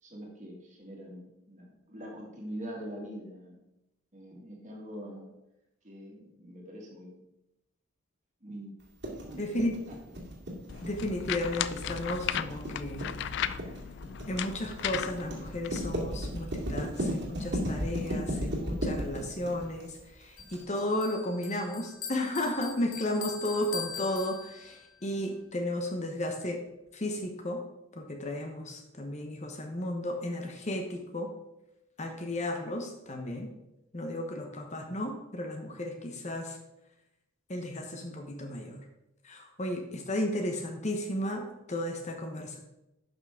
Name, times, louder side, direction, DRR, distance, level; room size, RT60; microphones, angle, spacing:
voice 1, 0.0-3.6 4.1-5.3 5.8-7.1 8.4-8.8 9.0-10.0, equal, 35° right, -1 dB, 2.0 m, -44 dB
sound 1, 9.0-20.6, equal, 55° right, 2.2 m, -34 dB
voice 2, 9.4-9.8 10.8-13.1 14.3-26.6 26.9-27.6 28.0-31.3 32.0-33.5 33.9-36.6 37.5-38.8 39.2-42.6, left 1 dB, 35° left, 4 dB, 0.9 m, -34 dB
sound 2, 10.7-16.0, left 9 dB, 55° left, 0.3 m, -36 dB
Bell, 20.4-24.9, left 6 dB, 80° left, 1.1 m, -42 dB
11.5 x 5.7 x 3.6 m, 0.90 s
head